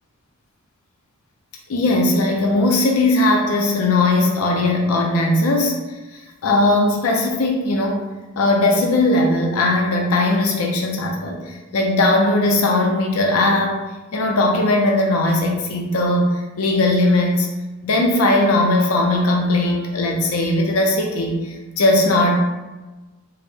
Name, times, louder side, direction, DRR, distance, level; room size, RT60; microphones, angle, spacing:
voice 1, 1.7-5.8 6.4-8.0 8.4-13.8 14.1-17.5 17.8-22.4, left 2 dB, 75° left, 1 dB, 0.5 m, -18 dB
4.3 x 2.0 x 3.5 m, 1.2 s
head